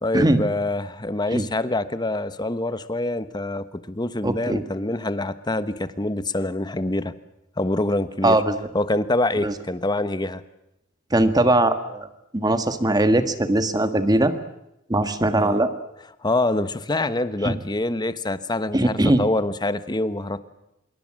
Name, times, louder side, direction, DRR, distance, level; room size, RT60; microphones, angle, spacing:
voice 1, 0.0-7.1 7.6-8.4 8.7-10.4 15.4-15.6 16.2-20.4, left 2 dB, 20° left, 13 dB, 1.1 m, -25 dB
voice 2, 4.2-4.6 8.2-8.5 9.4-9.5 11.1-12.1 12.3-14.3 14.9-15.7 17.4-17.5 18.7-19.2, right 1 dB, 20° right, 9 dB, 1.6 m, -20 dB
26.0 x 23.0 x 7.6 m, 0.87 s
head